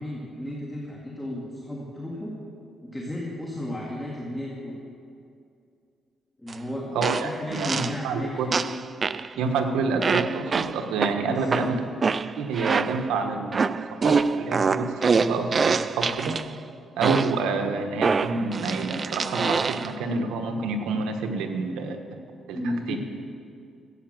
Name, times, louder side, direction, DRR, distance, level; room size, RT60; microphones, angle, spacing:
voice 1, 0.0-2.3 2.8-4.8 6.4-7.0 7.2-8.6 11.2-11.7 22.5-23.0, left 1 dB, 10° left, -4 dB, 2.2 m, -33 dB
sound 1, 6.5-6.6 7.0-8.0 8.5-9.3 10.0-13.1 13.5-16.5 17.0-17.5 18.0-19.9, right 5 dB, 35° right, 0.4 m, -25 dB
voice 2, 6.9-8.5 9.4-11.8 12.4-16.4 17.0-22.0 22.5-23.0, right 4 dB, 90° right, 5 dB, 1.3 m, -28 dB
14.0 x 8.8 x 7.7 m, 2.4 s
cardioid pair, 90°, 0 cm